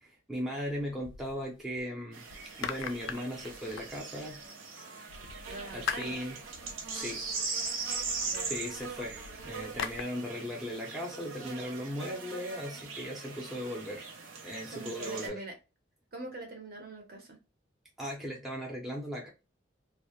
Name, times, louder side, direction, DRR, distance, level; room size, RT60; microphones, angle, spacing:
voice 1, 0.0-2.2 2.6-4.4 5.7-6.4 6.9-8.1 8.4-14.1 14.4-15.4 18.0-19.3, equal, ahead, 0.5 m, -38 dB
sound 1, 0.6-1.8 2.3-4.5 5.1-10.0, left 7 dB, 75° left, 0.3 m, -42 dB
sound 2, 2.1-15.3, right 4 dB, 90° right, 0.6 m, -40 dB
voice 2, 5.4-6.2 8.2-8.5 14.7-15.6 16.1-17.4, right 2 dB, 50° right, 0.7 m, -43 dB
2.1 x 2.0 x 2.9 m
head